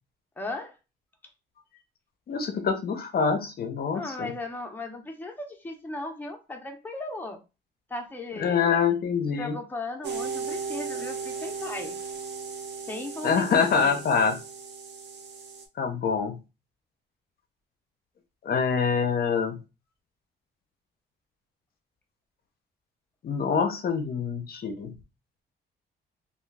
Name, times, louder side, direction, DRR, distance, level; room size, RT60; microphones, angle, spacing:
voice 1, 0.4-0.8 3.9-7.4 7.9-8.8 9.4-12.0 12.9-14.0, left 2 dB, 10° left, 0.6 m, -36 dB
voice 2, 2.3-4.3 8.4-9.6 13.2-14.4 15.8-16.4 18.4-19.6 23.2-24.9, left 6 dB, 50° left, 0.5 m, -25 dB
sound 1, 10.0-15.6, right 5 dB, 60° right, 0.7 m, -36 dB
2.3 x 2.2 x 3.2 m
cardioid pair, 90°, 20 cm